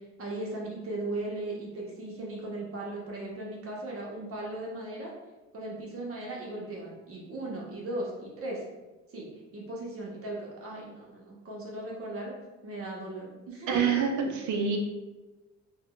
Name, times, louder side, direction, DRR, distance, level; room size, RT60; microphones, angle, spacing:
voice 1, 0.2-5.1 5.5-8.6 9.1-9.3 9.5-12.3 12.6-14.0, right 2 dB, 50° right, -3 dB, 0.9 m, -37 dB
voice 2, 13.7-14.8, right 6 dB, 70° right, 2 dB, 0.6 m, -26 dB
3.5 x 2.2 x 2.3 m, 1.1 s
cardioid pair, 90°, 30 cm